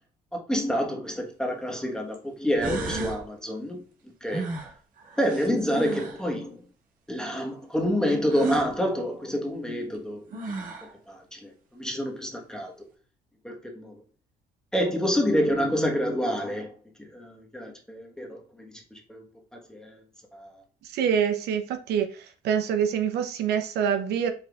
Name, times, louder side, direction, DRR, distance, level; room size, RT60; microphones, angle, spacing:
voice 1, 0.5-3.8 4.2-4.5 5.2-6.6 7.1-10.3 11.1-12.7 13.4-13.9 14.7-16.7 17.1-19.2 19.7-20.0 20.3-20.6, equal, 5° left, 1.3 m, -28 dB
sound 1, 1.1-1.2 2.1-2.2 2.6-3.2 4.3-6.3 8.3-8.7 9.9-10.0 10.3-10.9, right 3 dB, 50° right, 1.5 m, -33 dB
voice 2, 20.9-22.1 22.4-24.3, right 8 dB, 75° right, 0.8 m, -25 dB
5.1 x 4.3 x 2.4 m
cardioid pair, 110°, 17 cm